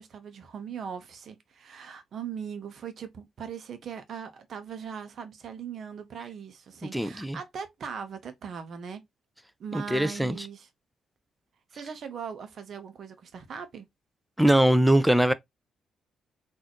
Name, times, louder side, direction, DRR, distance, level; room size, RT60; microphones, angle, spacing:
voice 1, 0.0-9.0 9.6-10.7 11.7-13.9, right 7 dB, 60° right, 0.9 m, -40 dB
voice 2, 6.8-7.4 9.7-10.4 14.4-15.3, right 1 dB, 5° right, 0.6 m, -22 dB
4.0 x 2.7 x 2.9 m
hypercardioid pair, 45°, 0 cm